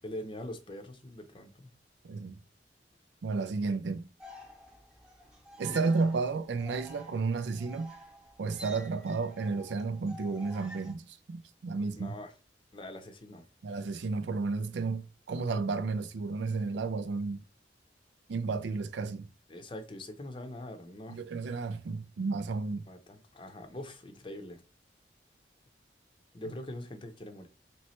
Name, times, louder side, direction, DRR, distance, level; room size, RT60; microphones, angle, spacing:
voice 1, 0.0-1.7 12.0-12.3 12.7-13.4 19.5-21.2 22.9-24.6 26.3-27.5, left 1 dB, 30° left, 0.6 m, -43 dB
voice 2, 2.0-2.4 3.2-4.1 5.6-7.9 8.4-12.2 13.6-17.4 18.3-19.3 21.1-22.9, right 4 dB, 75° right, 0.4 m, -32 dB
sound 1, 4.2-10.9, equal, 5° right, 0.8 m, -50 dB
3.2 x 3.1 x 4.2 m
head